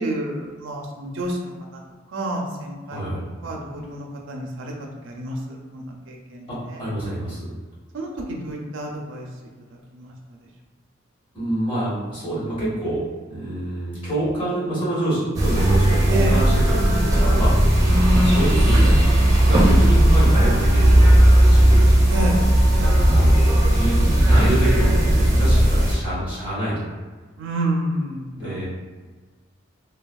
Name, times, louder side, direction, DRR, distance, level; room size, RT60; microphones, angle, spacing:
voice 1, 0.0-1.5 2.1-3.0 3.4-4.7 5.0-6.8 7.9-9.3 9.9-10.1 16.1-16.4 17.8-18.5 22.1-22.4 22.8-23.3 27.4-28.6, equal, 70° right, 0 dB, 0.5 m, -28 dB
voice 2, 2.9-3.2 6.5-7.5 11.3-13.0 13.3-17.5 17.8-22.1 23.0-26.7 28.4-28.7, right 1 dB, 25° left, -10 dB, 1.2 m, -27 dB
sound 1, 15.3-25.9, right 1 dB, 20° right, 0.5 m, -16 dB
3.3 x 2.3 x 2.3 m, 1.4 s
head